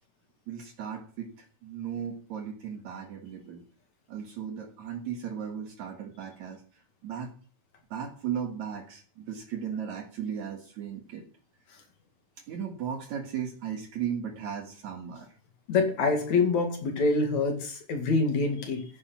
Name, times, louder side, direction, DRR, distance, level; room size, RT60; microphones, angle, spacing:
voice 1, 0.5-1.3 1.6-3.6 4.1-6.6 7.0-7.3 7.9-11.3 12.5-15.3, right 8 dB, 65° right, 3 dB, 2.9 m, -36 dB
voice 2, 15.7-18.9, left 3 dB, 65° left, 4 dB, 3.5 m, -25 dB
14.5 x 10.0 x 5.9 m, 0.41 s
omnidirectional pair, 3.6 m